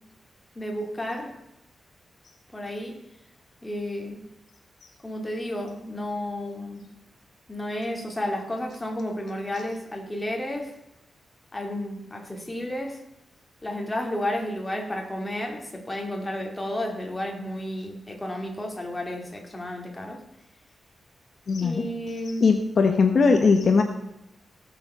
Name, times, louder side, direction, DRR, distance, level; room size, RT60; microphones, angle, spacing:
voice 1, 0.6-1.4 2.5-3.0 3.6-4.2 5.0-6.9 7.5-10.8 11.5-13.0 13.6-20.2 21.6-22.6, left 1 dB, 15° left, 1 dB, 2.4 m, -32 dB
voice 2, 21.5-21.8 22.4-23.8, left 4 dB, 50° left, 5 dB, 1.1 m, -19 dB
17.5 x 7.1 x 5.5 m, 0.85 s
wide cardioid pair, 160°, 0 cm